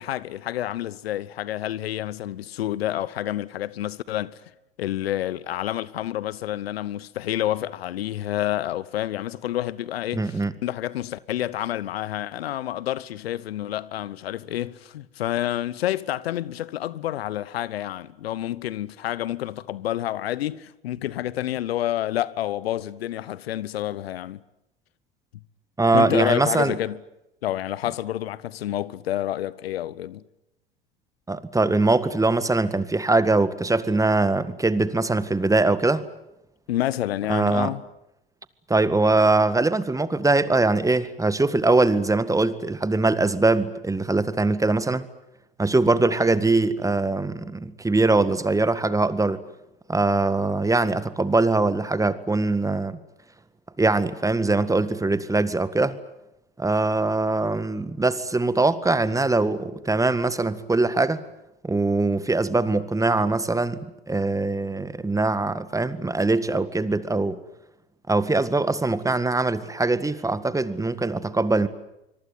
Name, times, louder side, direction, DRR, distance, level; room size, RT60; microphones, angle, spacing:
voice 1, 0.0-4.4 4.8-24.4 25.9-27.0 27.4-30.2 36.7-37.8, left 13 dB, 80° left, 1.0 m, -29 dB
voice 2, 10.1-10.5 25.8-26.8 31.3-36.1 37.3-37.7 38.7-45.0 45.6-49.4 49.9-53.0 53.8-56.0 56.6-61.2 61.6-67.4 68.1-71.7, right 3 dB, 10° right, 1.8 m, -22 dB
25.0 x 23.0 x 9.5 m
hypercardioid pair, 80°, 30 cm